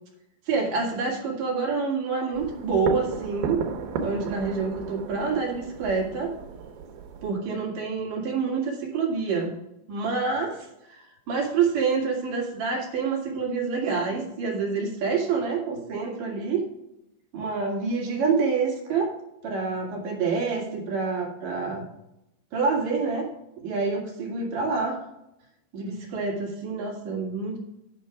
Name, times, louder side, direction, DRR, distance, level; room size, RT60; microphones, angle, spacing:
voice 1, 0.5-3.6 4.0-6.3 7.2-9.5 9.9-16.6 17.3-19.1 19.4-21.9 22.5-23.3 23.6-25.0 25.7-27.6, right 4 dB, 60° right, 0 dB, 3.3 m, -27 dB
sound 1, 2.3-7.3, right 6 dB, 85° right, 3.1 m, -34 dB
10.0 x 6.4 x 4.8 m, 0.89 s
omnidirectional pair, 4.5 m